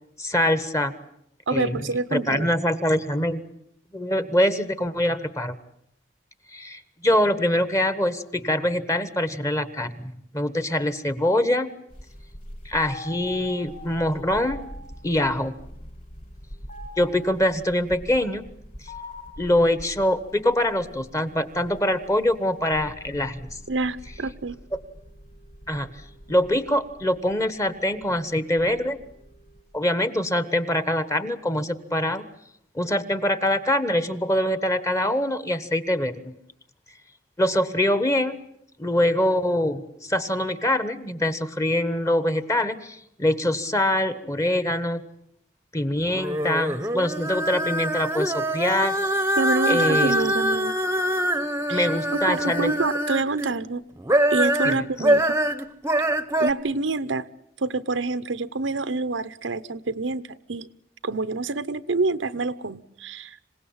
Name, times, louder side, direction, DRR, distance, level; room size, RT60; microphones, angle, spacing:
voice 1, 0.2-0.9 1.5-3.4 3.9-5.6 6.5-11.7 12.6-14.6 15.0-15.5 17.0-18.5 19.4-23.5 25.7-25.9 26.3-29.0 29.7-32.2 32.7-36.3 37.4-38.4 38.8-45.0 45.7-49.3 49.7-50.2 51.7-52.7 54.6-54.8, left 1 dB, 15° left, 12 dB, 1.2 m, -24 dB
voice 2, 1.5-2.5 23.7-24.6 49.4-50.7 51.7-51.9 52.3-53.8 54.3-55.2 56.4-57.3 57.6-60.2 60.5-60.7 61.0-63.4, right 3 dB, 85° right, 13 dB, 0.9 m, -27 dB
sound 1, 11.9-29.6, left 1 dB, 45° left, 5.3 m, -43 dB
sound 2, 46.0-53.5 54.0-56.5, right 1 dB, 15° right, 0.9 m, -24 dB
26.5 x 17.5 x 8.7 m, 0.76 s
head